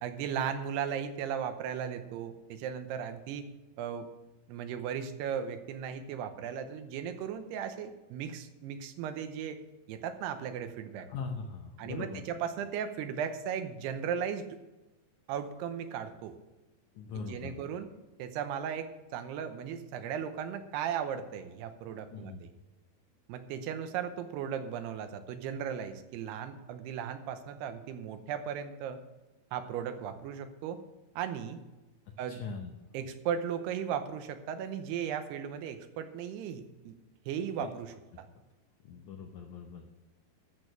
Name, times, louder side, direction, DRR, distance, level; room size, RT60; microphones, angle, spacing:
voice 1, 0.0-3.5 3.8-4.1 4.5-9.6 9.9-11.1 11.8-14.6 15.3-16.3 17.1-17.9 18.2-22.5 23.3-29.0 29.5-30.8 31.2-31.6 32.2-32.4 32.9-36.9 37.3-38.3, right 8 dB, 85° right, 9 dB, 2.9 m, -36 dB
voice 2, 11.1-12.3 16.9-17.6 22.1-22.4 32.3-32.7 37.6-37.7 38.8-39.9, left 5 dB, 80° left, 3 dB, 1.7 m, -41 dB
13.5 x 6.4 x 6.5 m, 1.1 s
omnidirectional pair, 4.7 m